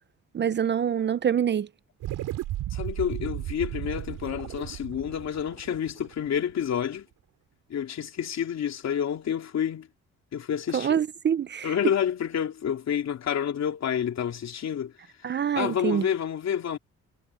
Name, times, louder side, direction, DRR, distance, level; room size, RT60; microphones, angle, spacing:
voice 1, 0.3-1.7 10.7-11.7 15.2-16.1, right 8 dB, 35° right, 0.5 m, -25 dB
sound 1, 2.0-6.7, right 14 dB, 90° right, 3.8 m, -35 dB
voice 2, 2.7-7.1 7.7-9.9 10.3-11.0 11.6-14.9 15.2-16.8, left 8 dB, 60° left, 3.0 m, -29 dB
cardioid pair, 90°, 30 cm